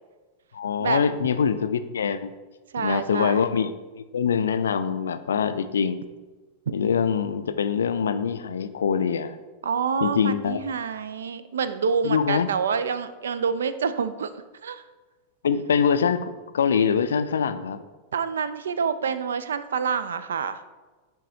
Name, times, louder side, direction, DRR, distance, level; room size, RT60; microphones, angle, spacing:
voice 1, 0.5-2.3 2.8-6.0 6.7-9.4 10.0-10.7 12.0-12.5 15.4-17.8, left 6 dB, 65° left, 11 dB, 0.3 m, -24 dB
voice 2, 2.7-3.4 9.6-14.3 14.6-14.8 18.1-20.6, right 6 dB, 65° right, 12 dB, 0.3 m, -27 dB
11.5 x 3.8 x 2.7 m, 1.2 s
figure-of-eight pair, 90°, 0 cm